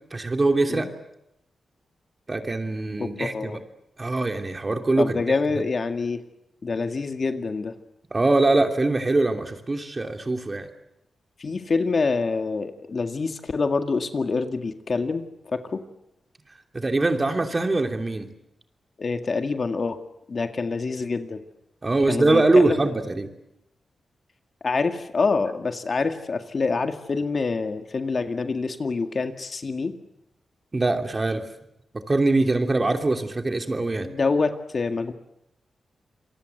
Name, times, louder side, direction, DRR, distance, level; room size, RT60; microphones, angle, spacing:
voice 1, 0.1-0.9 2.3-3.6 4.0-5.2 8.1-10.7 16.7-18.3 21.8-23.3 30.7-31.4 32.1-34.1, right 2 dB, 30° right, 5 dB, 2.9 m, -23 dB
voice 2, 3.0-3.6 5.0-6.2 6.6-7.8 11.4-15.8 19.0-20.0 20.3-21.4 22.1-22.8 24.6-29.9 34.0-35.1, left 4 dB, 45° left, 7 dB, 1.9 m, -26 dB
27.5 x 23.0 x 7.9 m, 0.84 s
cardioid pair, 90°, 0 cm